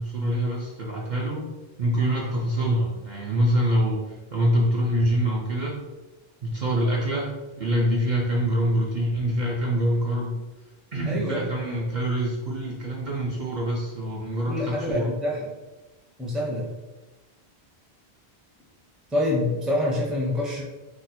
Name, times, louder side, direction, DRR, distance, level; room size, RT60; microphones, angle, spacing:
voice 1, 0.0-1.5 1.8-5.8 6.4-10.4 10.9-15.1, equal, 55° right, -3 dB, 0.6 m, -25 dB
voice 2, 11.1-11.4 14.5-15.5 16.2-16.7 19.1-20.6, left 1 dB, ahead, -3 dB, 0.5 m, -26 dB
2.7 x 2.1 x 4.0 m, 1.1 s
omnidirectional pair, 1.1 m